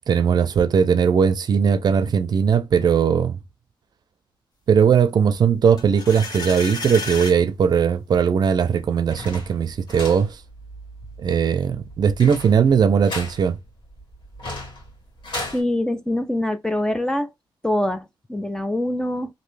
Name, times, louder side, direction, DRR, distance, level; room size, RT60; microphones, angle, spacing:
voice 1, 0.1-3.4 4.7-10.4 11.2-13.6, right 7 dB, 50° right, 0.5 m, -19 dB
sound 1, 5.8-7.4, left 3 dB, 50° left, 1.4 m, -31 dB
sound 2, 8.6-15.6, left 1 dB, 65° left, 1.9 m, -37 dB
voice 2, 15.5-17.3 17.6-19.3, left 1 dB, 5° left, 0.4 m, -24 dB
3.0 x 2.6 x 3.2 m
wide cardioid pair, 125°, 9 cm